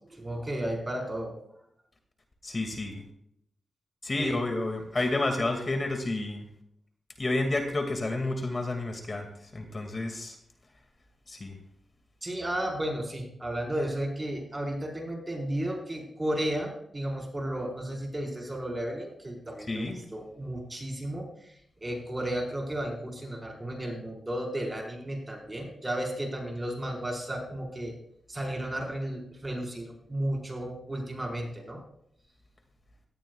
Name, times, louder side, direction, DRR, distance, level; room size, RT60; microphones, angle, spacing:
voice 1, 0.1-1.3 4.2-4.4 12.2-21.5 21.8-27.9 28.3-31.8, right 1 dB, 20° right, 1 dB, 4.5 m, -33 dB
voice 2, 2.4-3.0 4.0-6.5 7.2-10.4 11.3-11.6 19.7-20.0, left 2 dB, 40° left, 4 dB, 2.1 m, -30 dB
17.5 x 14.0 x 2.4 m, 0.71 s
cardioid pair, 70°, 0 cm